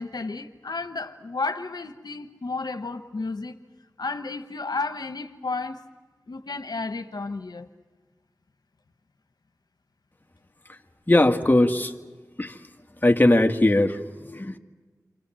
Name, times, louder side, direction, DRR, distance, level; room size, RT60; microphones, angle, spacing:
voice 1, 0.0-3.6 4.0-5.8 6.3-7.7, left 3 dB, 85° left, 1.1 m, -32 dB
voice 2, 11.1-11.9 12.4-12.6 13.0-14.6, left 1 dB, 25° left, 2.0 m, -20 dB
29.5 x 26.0 x 7.7 m
wide cardioid pair, 45°, 7 cm